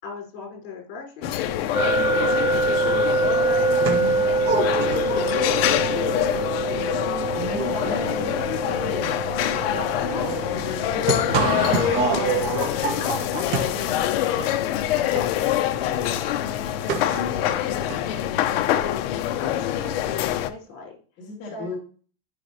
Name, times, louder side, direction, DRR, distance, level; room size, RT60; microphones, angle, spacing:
voice 1, 0.0-3.7 4.3-7.0 7.7-9.0 10.1-10.9 13.0-18.2 18.5-21.0 21.5-21.8, left 5 dB, 60° left, 0 dB, 4.5 m, -39 dB
sound 1, 1.2-20.5, left 12 dB, 85° left, 0.9 m, -25 dB
sound 2, 1.7-14.6, right 3 dB, 10° right, 1.2 m, -26 dB
sound 3, 3.1-18.2, right 5 dB, 40° right, 1.8 m, -30 dB
voice 2, 3.8-4.3 7.3-9.2 9.5-12.4 21.2-21.8, left 2 dB, 35° left, -6 dB, 2.8 m, -37 dB
13.5 x 5.8 x 2.8 m, 0.41 s
supercardioid pair, 175°, 29 cm